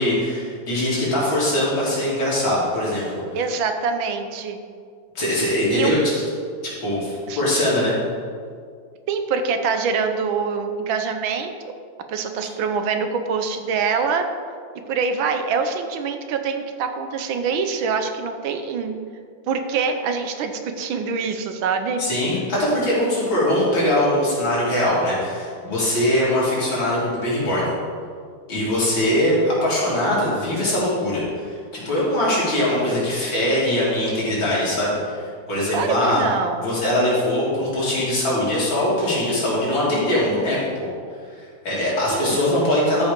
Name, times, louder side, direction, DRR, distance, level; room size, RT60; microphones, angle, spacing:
voice 1, 0.0-3.1 3.3-3.4 5.2-6.2 6.6-8.0 22.0-27.7 28.5-36.2 36.6-40.6 41.4-43.1, left 1 dB, 80° left, -7 dB, 3.8 m, -22 dB
voice 2, 3.3-4.6 5.7-5.9 7.3-7.4 9.1-11.5 12.1-14.3 14.9-19.0 19.5-22.0 35.7-36.7 42.1-42.4, right 5 dB, 90° right, 7 dB, 1.6 m, -24 dB
13.0 x 5.4 x 5.2 m, 2.1 s
omnidirectional pair, 2.1 m